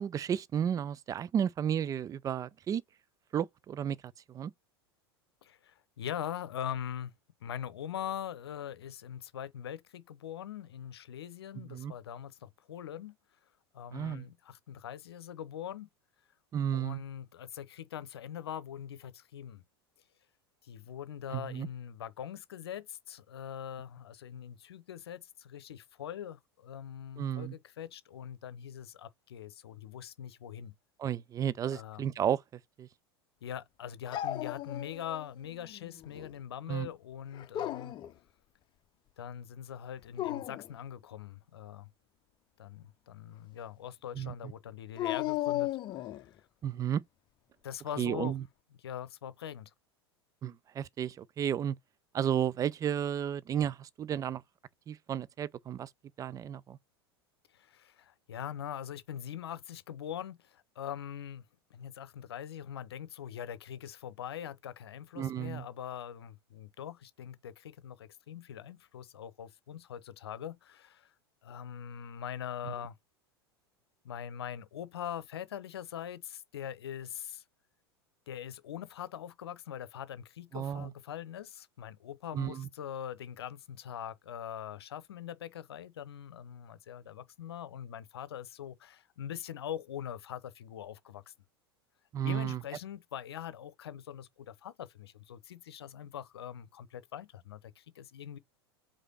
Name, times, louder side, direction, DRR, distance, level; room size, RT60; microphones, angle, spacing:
voice 1, 0.0-2.8 3.3-4.0 4.3-4.5 11.7-11.9 13.9-14.2 16.5-17.0 21.3-21.7 27.2-27.5 31.0-32.4 32.8-32.9 36.7-36.9 44.2-44.3 46.6-47.0 48.0-48.4 50.4-51.8 52.1-54.4 54.9-55.9 56.2-56.8 65.2-65.6 80.5-80.9 82.3-82.7 92.1-92.6, right 9 dB, 25° right, 0.5 m, -32 dB
voice 2, 5.4-7.1 7.4-13.1 13.7-15.9 16.7-19.6 20.6-30.7 31.7-32.0 33.4-38.0 39.2-41.9 42.6-46.4 47.6-48.4 48.8-49.7 57.5-61.4 61.7-71.1 71.4-73.0 74.0-77.4 78.3-91.3 92.2-98.4, left 9 dB, 70° left, 0.8 m, -42 dB
Dog, 34.1-35.3 35.6-36.3 37.3-38.1 40.0-40.7 45.0-46.3, left 14 dB, 35° left, 0.7 m, -35 dB
4.9 x 4.2 x 5.6 m
figure-of-eight pair, 85°, 13 cm